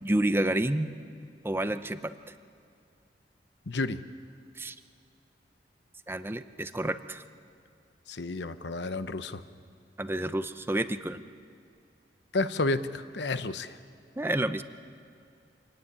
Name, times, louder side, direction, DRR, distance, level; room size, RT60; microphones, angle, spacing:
voice 1, 0.0-0.9 1.4-2.1 4.6-4.7 6.1-7.2 10.0-11.2 14.2-14.6, right 1 dB, 15° right, 10 dB, 0.6 m, -29 dB
voice 2, 3.7-4.0 8.1-9.4 12.3-13.8, left 2 dB, 75° left, 12 dB, 0.9 m, -31 dB
25.0 x 17.0 x 9.7 m, 2.4 s
head